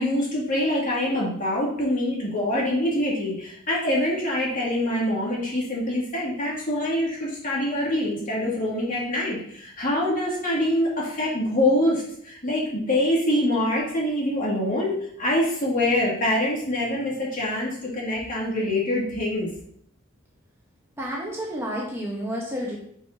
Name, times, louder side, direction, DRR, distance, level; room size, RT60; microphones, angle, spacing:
voice 1, 0.0-19.5, left 1 dB, 40° left, -4 dB, 2.2 m, -25 dB
voice 2, 21.0-22.8, equal, 10° right, -3 dB, 1.1 m, -30 dB
8.7 x 4.8 x 2.8 m, 0.66 s
head